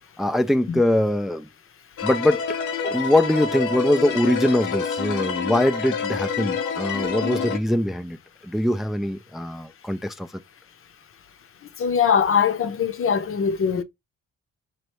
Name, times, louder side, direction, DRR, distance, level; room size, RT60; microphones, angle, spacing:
voice 1, 0.2-1.5 2.0-2.5 2.8-8.2 8.4-10.3, left 1 dB, ahead, 0.4 m, -22 dB
sound 1, 2.0-7.6, left 6 dB, 85° left, 0.8 m, -27 dB
voice 2, 11.8-13.8, left 7 dB, 45° left, 0.8 m, -21 dB
4.4 x 2.6 x 3.0 m
cardioid pair, 90°, 30 cm